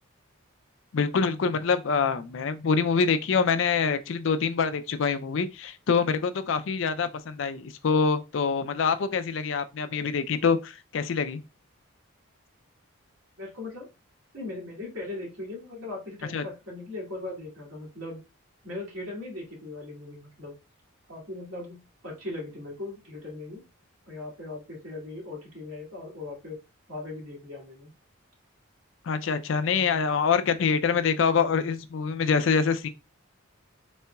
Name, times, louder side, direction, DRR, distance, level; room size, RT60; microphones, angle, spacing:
voice 1, 0.9-11.4 16.3-16.4 29.0-32.9, left 5 dB, 60° left, 0.4 m, -25 dB
voice 2, 13.4-13.9 14.3-18.2 18.6-20.5 21.1-23.6 24.1-26.6 26.9-27.9, left 2 dB, 75° right, 2.2 m, -39 dB
4.2 x 3.8 x 2.2 m
head